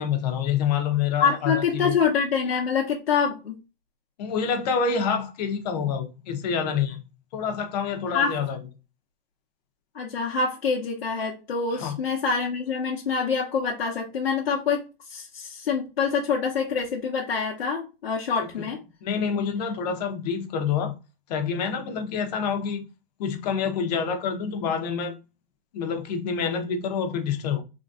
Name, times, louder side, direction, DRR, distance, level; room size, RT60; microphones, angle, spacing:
voice 1, 0.0-2.0 4.2-7.0 7.3-8.6 11.7-12.0 19.0-20.9 21.3-22.8 23.2-25.2 25.7-27.6, left 6 dB, 45° left, 0.7 m, -27 dB
voice 2, 1.2-3.6 8.1-8.4 9.9-18.8, left 5 dB, 90° left, 0.8 m, -26 dB
3.1 x 2.6 x 2.3 m
hypercardioid pair, 135°, 29 cm